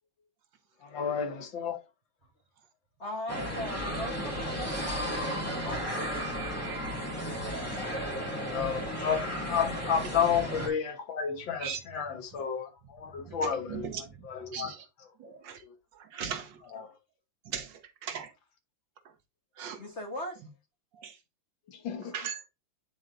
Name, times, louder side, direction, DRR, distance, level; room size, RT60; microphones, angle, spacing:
voice 1, 0.8-1.8 8.5-13.9 14.2-14.7 15.6-15.7 16.7-16.9 21.7-22.1, left 7 dB, 80° left, 2.0 m, -31 dB
voice 2, 3.0-6.3 19.8-20.4, left 1 dB, 40° left, 1.4 m, -40 dB
sound 1, 3.3-10.7, equal, 5° left, 2.1 m, -34 dB
voice 3, 13.2-14.9 15.2-15.6 15.9-16.6 17.5-18.3 19.6-19.8 20.9-21.2 22.1-22.4, right 8 dB, 75° right, 1.5 m, -39 dB
9.1 x 4.4 x 2.6 m
omnidirectional pair, 2.1 m